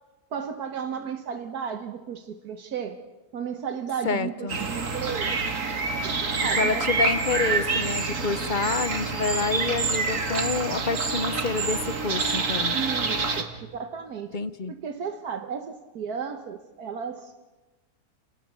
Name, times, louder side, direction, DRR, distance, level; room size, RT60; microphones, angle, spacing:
voice 1, 0.3-3.0 3.3-5.4 6.0-6.9 12.7-14.3 14.7-17.5, right 7 dB, 75° right, 8 dB, 1.6 m, -34 dB
voice 2, 4.0-4.6 6.6-12.7 14.3-14.8, left 4 dB, 40° left, 13 dB, 0.8 m, -28 dB
sound 1, 4.5-13.4, right 4 dB, 55° right, 2.1 m, -27 dB
29.0 x 18.5 x 6.8 m, 1.1 s
omnidirectional pair, 1.6 m